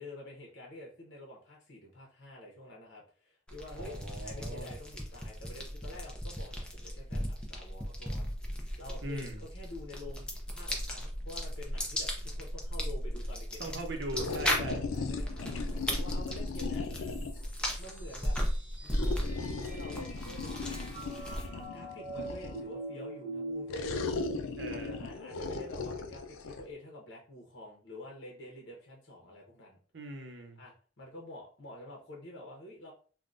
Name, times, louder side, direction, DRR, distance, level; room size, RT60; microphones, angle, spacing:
voice 1, 0.0-8.3 8.8-13.7 14.6-16.9 17.8-18.4 18.8-20.7 21.2-23.9 24.7-29.8 30.6-32.9, left 1 dB, 60° left, -1 dB, 0.9 m, -48 dB
sound 1, 3.5-21.7, equal, 5° left, 0.5 m, -36 dB
voice 2, 3.7-4.7 9.0-9.4 13.6-14.9 24.6-25.0 29.9-30.6, right 1 dB, 60° right, 4 dB, 0.7 m, -40 dB
sound 2, 14.1-17.5 18.9-22.7 23.7-26.6, left 4 dB, 85° left, 0.4 m, -38 dB
sound 3, 16.9-25.0, right 2 dB, 10° right, 0.9 m, -43 dB
3.6 x 2.2 x 2.5 m, 0.40 s
head